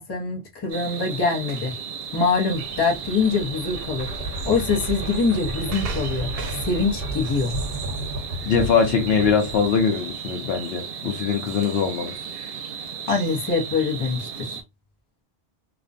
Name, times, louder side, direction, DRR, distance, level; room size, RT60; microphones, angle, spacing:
voice 1, 0.0-1.7 2.1-4.1 4.4-6.3 6.6-7.5 13.1-14.6, left 4 dB, 25° left, 0.7 m, -24 dB
sound 1, 0.7-14.6, right 7 dB, 70° right, 0.7 m, -35 dB
sound 2, 2.1-10.1, right 1 dB, 55° left, 1.2 m, -33 dB
voice 2, 8.4-12.1, left 6 dB, 70° left, 0.8 m, -22 dB
2.5 x 2.1 x 2.5 m
omnidirectional pair, 1.1 m